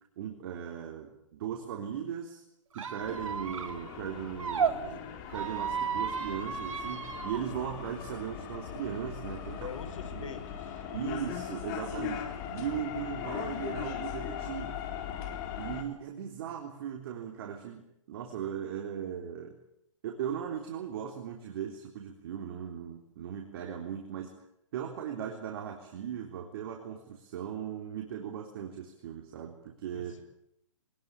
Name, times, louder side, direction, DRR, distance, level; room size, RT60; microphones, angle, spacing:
voice 1, 0.2-2.4 2.7-5.0 5.3-9.7 10.1-10.3 10.9-14.8 15.6-19.6 20.0-24.3 24.7-30.1, right 9 dB, 45° right, 1 dB, 3.8 m, -38 dB
Squeak, 2.7-4.7 5.3-7.4, right 7 dB, 80° right, 3.6 m, -34 dB
sound 1, 3.0-15.8, left 8 dB, 35° left, 3.8 m, -39 dB
voice 2, 9.6-10.8 29.9-30.2, left 6 dB, 75° left, 9 dB, 5.3 m, -44 dB
23.5 x 20.0 x 8.8 m, 0.81 s
hypercardioid pair, 155°, 17 cm